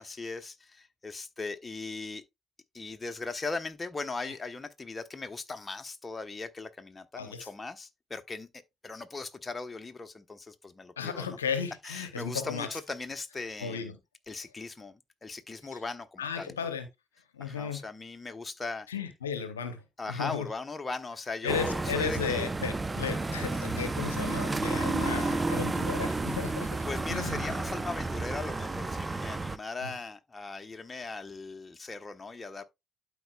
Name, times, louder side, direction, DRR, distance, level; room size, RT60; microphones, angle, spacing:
voice 1, 0.0-2.2 2.7-11.4 11.8-13.9 14.3-16.7 17.4-18.9 20.0-22.5 26.8-32.6, left 3 dB, 25° left, 1.1 m, -39 dB
voice 2, 7.1-7.5 11.0-12.7 13.6-14.0 16.2-16.9 17.3-17.8 18.9-19.8 20.1-20.5 21.4-26.7 27.1-27.5 29.8-30.0, left 6 dB, 90° left, 0.8 m, -34 dB
sound 1, 21.5-29.6, right 3 dB, 25° right, 0.7 m, -31 dB
12.0 x 4.8 x 2.3 m
hypercardioid pair, 45°, 0 cm